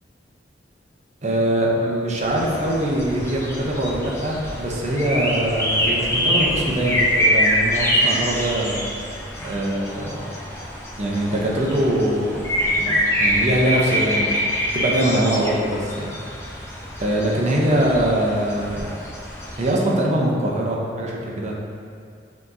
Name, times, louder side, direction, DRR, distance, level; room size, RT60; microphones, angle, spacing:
voice 1, 1.2-8.8 9.4-10.2 11.0-12.4 12.8-12.9 13.2-16.1 17.0-18.9 19.6-21.5, right 1 dB, 40° right, -3 dB, 0.6 m, -22 dB
sound 1, 2.2-19.7, equal, 15° left, 0.5 m, -25 dB
5.6 x 2.9 x 2.6 m, 2.3 s
head